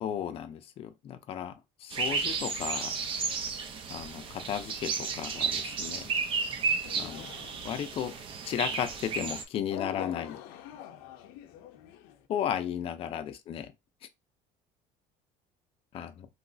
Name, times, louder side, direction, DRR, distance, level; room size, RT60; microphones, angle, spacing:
voice 1, 0.0-2.9 3.9-6.1 7.0-7.3 7.6-8.1 8.4-10.4 12.3-13.7 15.9-16.3, left 9 dB, 40° left, 0.5 m, -34 dB
sound 1, 1.9-9.4, right 5 dB, 35° right, 0.6 m, -33 dB
sound 2, 6.8-8.0 9.7-12.2, left 10 dB, 90° left, 0.5 m, -44 dB
3.1 x 2.8 x 2.6 m
cardioid pair, 155°, 15 cm